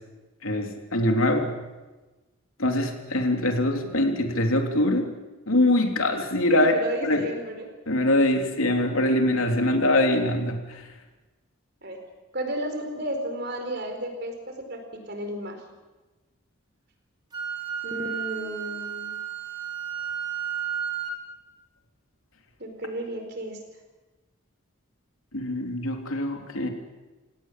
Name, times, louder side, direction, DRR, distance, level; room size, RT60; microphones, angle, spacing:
voice 1, 0.4-1.6 2.6-5.2 5.5-6.7 7.0-7.3 7.9-10.8 25.3-26.7, left 1 dB, 80° left, 3 dB, 3.4 m, -23 dB
voice 2, 6.5-7.7 11.8-12.0 12.3-14.8 15.1-15.6 17.8-19.1 22.6-23.6, right 1 dB, 50° right, 5 dB, 4.4 m, -33 dB
Wind instrument woodwind instrument, 17.3-21.2, right 8 dB, 20° right, 3.3 m, -32 dB
29.0 x 17.5 x 7.6 m, 1.2 s
head